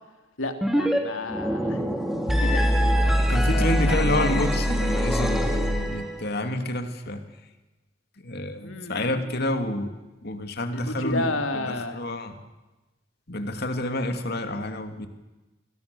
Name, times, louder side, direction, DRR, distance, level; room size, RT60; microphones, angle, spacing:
voice 1, 0.4-1.9 2.4-2.6 3.5-4.4 8.6-9.6 10.7-12.0, left 2 dB, 80° left, 6 dB, 3.1 m, -32 dB
sound 1, 0.6-1.0 1.2-6.2, equal, ahead, 3.0 m, -23 dB
voice 2, 3.2-7.2 8.2-12.4 13.3-15.1, left 1 dB, 50° left, 7 dB, 2.7 m, -29 dB
29.5 x 22.5 x 7.0 m, 1.1 s
head